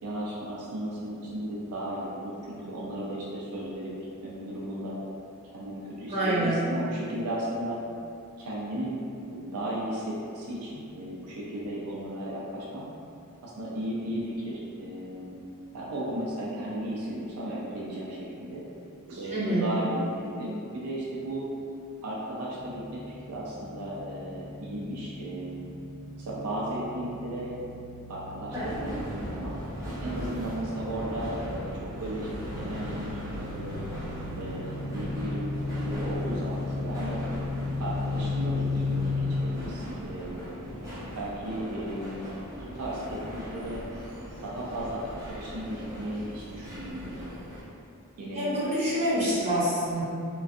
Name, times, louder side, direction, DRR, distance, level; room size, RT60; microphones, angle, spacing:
voice 1, 0.0-5.0 5.4-7.8 8.4-9.0 9.3-12.9 13.4-15.4 15.7-18.6 19.1-21.5 22.0-25.7 26.2-27.5 28.1-29.6 30.0-33.8 34.4-37.2 37.8-40.6 41.2-42.3 42.6-43.8 44.4-47.2 48.2-49.1, right 1 dB, 90° right, -5 dB, 0.4 m, -35 dB
voice 2, 6.1-6.5 19.3-19.6 48.3-50.0, right 1 dB, 30° right, -12 dB, 0.9 m, -26 dB
sound 1, 22.6-39.3, left 3 dB, 75° left, 0.6 m, -36 dB
sound 2, 28.5-47.6, equal, 15° right, 0.5 m, -39 dB
2.4 x 2.3 x 2.4 m, 2.5 s
head